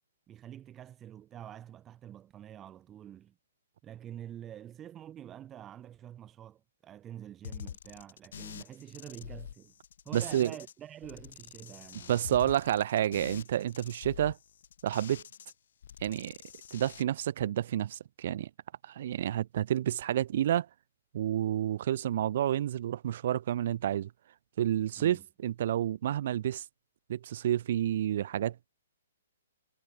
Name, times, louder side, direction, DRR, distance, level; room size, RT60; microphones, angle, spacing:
voice 1, 0.3-3.4 3.8-9.7 10.1-12.2 25.0-25.3, right 11 dB, 20° right, 3.9 m, -47 dB
sound 1, 7.4-10.7 11.0-15.5 15.8-17.0, left 8 dB, 65° left, 4.2 m, -46 dB
voice 2, 10.1-10.5 12.1-14.4 14.8-15.2 16.0-16.3 16.7-18.5 18.8-20.7 21.1-24.1 24.6-26.6 27.1-28.7, right 11 dB, 55° right, 0.6 m, -29 dB
hypercardioid pair, 140°, 0 cm